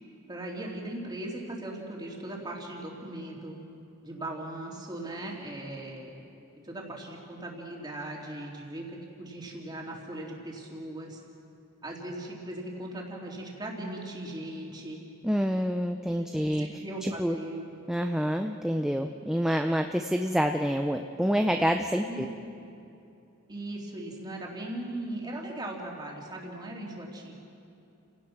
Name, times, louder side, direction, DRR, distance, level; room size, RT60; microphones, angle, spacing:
voice 1, 0.3-3.6 4.0-6.3 6.6-11.2 11.8-15.0 16.6-17.6 22.1-22.2 23.5-27.3, right 1 dB, 20° right, -1 dB, 3.1 m, -38 dB
voice 2, 15.2-16.7 17.0-17.4 17.9-22.3, equal, ahead, 5 dB, 0.5 m, -27 dB
30.0 x 17.5 x 6.0 m, 2.6 s
head